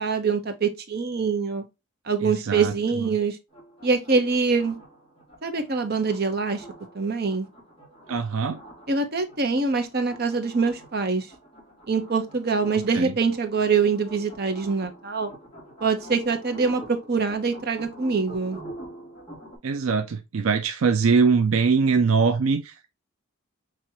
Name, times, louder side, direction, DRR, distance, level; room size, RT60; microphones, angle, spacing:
voice 1, 0.0-1.6 2.1-3.4 3.8-4.8 5.4-6.6 6.9-7.5 8.9-11.3 11.9-15.3 15.8-18.6, right 4 dB, 45° right, 0.9 m, -24 dB
voice 2, 2.2-2.7 3.0-3.1 8.1-8.6 12.9-13.1 19.6-22.9, right 5 dB, 75° right, 0.5 m, -22 dB
sound 1, 3.5-19.6, right 1 dB, 25° left, 2.2 m, -46 dB
6.0 x 2.9 x 2.7 m
head